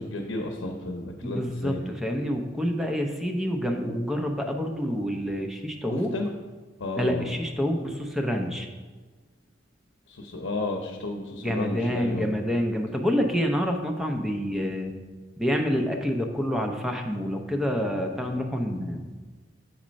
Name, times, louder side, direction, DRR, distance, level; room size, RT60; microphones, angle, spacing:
voice 1, 0.0-1.9 6.1-6.3 6.8-7.3 10.1-12.3, left 2 dB, 80° left, 3 dB, 0.8 m, -32 dB
voice 2, 1.2-6.2 6.9-8.7 11.3-15.0 15.4-19.1, equal, ahead, 2 dB, 0.7 m, -27 dB
7.4 x 4.3 x 5.2 m, 1.3 s
head